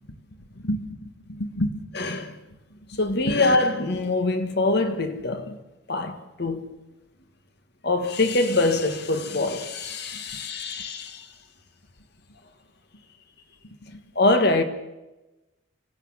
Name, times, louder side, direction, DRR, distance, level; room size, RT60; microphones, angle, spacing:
voice 1, 0.4-2.0 2.7-3.0 3.3-3.4 5.5-5.6 10.1-10.4 13.6-14.0, equal, 85° left, 1.9 m, -32 dB
voice 2, 2.0-2.3 3.0-5.5 5.9-6.7 7.8-11.3 14.1-14.6, left 2 dB, 50° left, 1.6 m, -24 dB
26.0 x 17.0 x 7.4 m
head